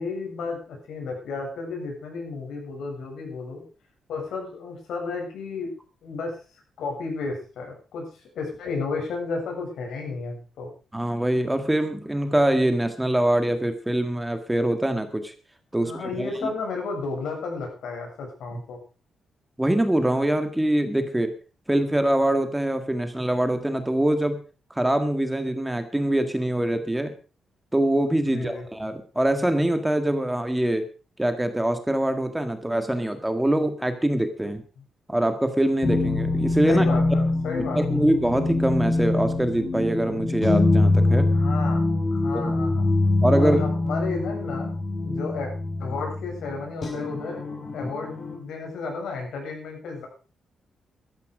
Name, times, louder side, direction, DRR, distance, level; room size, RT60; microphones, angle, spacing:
voice 1, 0.0-3.6 4.1-5.7 6.0-6.3 6.8-8.0 8.3-10.7 15.7-18.8 28.2-28.7 34.8-34.9 36.7-38.1 41.3-41.8 42.1-42.9 43.4-44.7 45.0-45.5 45.8-47.4 47.7-50.1, left 4 dB, 80° left, 1 dB, 7.8 m, -32 dB
voice 2, 10.9-15.3 15.7-16.5 19.6-21.3 21.7-24.4 24.7-27.1 27.7-30.9 31.2-34.6 35.1-36.9 37.7-41.3 42.3-42.5 43.2-43.6, right 1 dB, 5° right, 8 dB, 1.8 m, -24 dB
sound 1, 35.8-48.4, left 2 dB, 40° left, 4.1 m, -24 dB
15.0 x 13.0 x 5.1 m, 0.37 s
cardioid pair, 145°, 0 cm